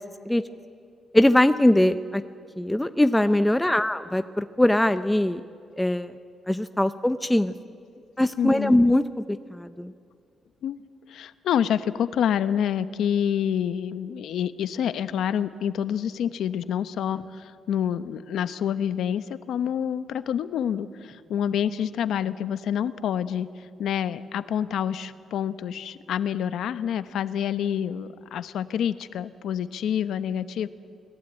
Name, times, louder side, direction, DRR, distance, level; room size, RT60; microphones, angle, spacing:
voice 1, 1.1-2.2 2.6-5.4 5.8-6.2 6.5-7.5 8.2-9.0 9.5-9.9, left 1 dB, 5° left, 10 dB, 0.6 m, -21 dB
voice 2, 8.4-8.8 10.6-10.8 11.1-23.5 23.8-30.7, left 9 dB, 80° left, 12 dB, 1.0 m, -27 dB
29.5 x 19.0 x 9.0 m, 2.3 s
cardioid pair, 150°, 0 cm